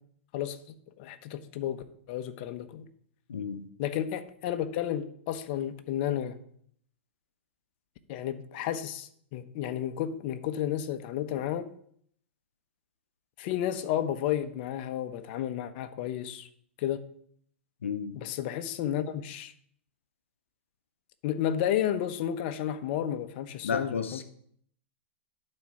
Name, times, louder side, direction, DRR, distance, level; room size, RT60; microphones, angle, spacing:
voice 1, 1.0-2.9 3.8-6.4 8.1-11.6 13.4-16.5 16.8-17.0 18.1-19.5 21.2-24.2, left 10 dB, 50° left, 9 dB, 0.9 m, -32 dB
voice 2, 3.3-3.6 17.8-18.2 23.6-24.2, left 6 dB, 85° left, 9 dB, 0.9 m, -32 dB
11.5 x 4.4 x 4.9 m, 0.64 s
hypercardioid pair, 115°, 7 cm